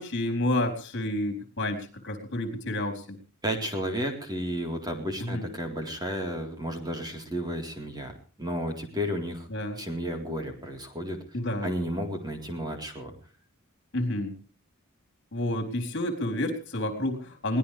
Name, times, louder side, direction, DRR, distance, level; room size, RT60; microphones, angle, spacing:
voice 1, 0.0-1.8 2.0-3.2 5.2-5.5 9.5-9.8 11.3-11.7 13.9-14.3 15.3-17.6, left 1 dB, 55° left, 4 dB, 4.2 m, -29 dB
voice 2, 3.4-8.1 8.4-9.5 9.8-11.2 11.6-13.1, equal, 20° right, 3 dB, 3.9 m, -32 dB
23.0 x 18.5 x 3.4 m, 0.39 s
head